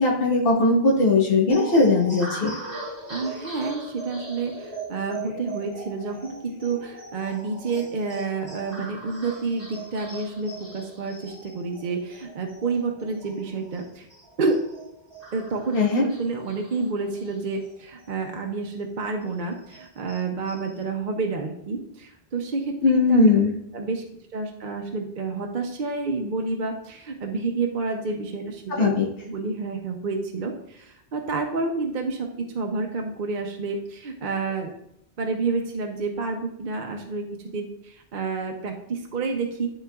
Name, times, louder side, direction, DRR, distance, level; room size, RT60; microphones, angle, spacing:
voice 1, 0.0-2.5 15.7-16.0 22.8-23.5 28.8-29.1, left 3 dB, 65° left, -3 dB, 1.4 m, -19 dB
sound 1, 1.5-18.4 18.7-18.8 19.2-20.8, right 2 dB, 25° right, 2.7 m, -40 dB
voice 2, 3.1-14.1 14.4-14.7 15.3-23.3 23.7-24.0 24.3-28.9 29.2-34.7 35.2-37.2 37.5-39.7, right 4 dB, 55° right, 2 dB, 0.8 m, -29 dB
11.0 x 3.8 x 2.3 m, 0.75 s
omnidirectional pair, 1.0 m